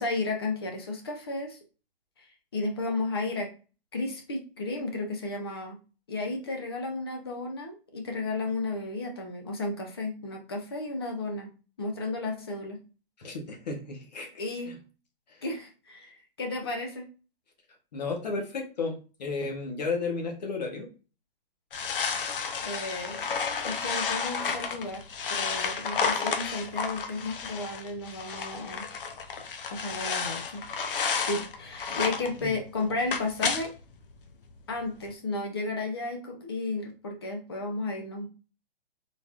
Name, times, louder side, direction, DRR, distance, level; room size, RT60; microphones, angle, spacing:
voice 1, 0.0-1.6 2.5-3.5 3.9-5.8 6.1-11.5 11.8-12.8 14.4-14.8 15.4-17.1 22.6-23.2 23.6-25.0 25.3-28.9 29.7-30.6 31.3-33.8 34.7-38.3, left 2 dB, 25° left, 2 dB, 0.6 m, -33 dB
voice 2, 13.2-14.8 15.3-15.4 17.9-20.9 31.9-32.0 32.4-32.5, left 4 dB, 45° left, 3 dB, 1.1 m, -33 dB
sound 1, 21.7-32.4 32.8-33.8 34.1-34.2 34.5-34.6 35.1-35.2, left 5 dB, 65° left, 0.8 m, -31 dB
4.0 x 3.6 x 2.4 m, 0.34 s
hypercardioid pair, 175°, 30 cm